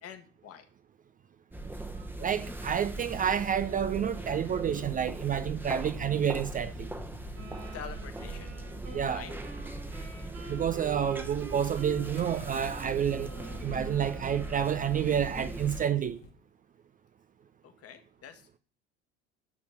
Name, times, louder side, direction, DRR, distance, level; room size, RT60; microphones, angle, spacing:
voice 1, 0.0-0.6 7.7-8.5 9.0-9.4 17.6-18.6, left 9 dB, 40° left, 1.5 m, -46 dB
sound 1, 1.5-15.9, right 2 dB, 5° right, 1.1 m, -40 dB
voice 2, 2.2-6.9 8.9-9.2 10.5-13.3 13.6-16.2, right 8 dB, 25° right, 0.4 m, -29 dB
sound 2, 3.0-11.1 11.7-16.3, left 2 dB, 75° left, 1.5 m, -52 dB
sound 3, 7.3-15.3, right 2 dB, 70° right, 4.1 m, -47 dB
9.5 x 4.3 x 7.2 m
figure-of-eight pair, 65°, 35 cm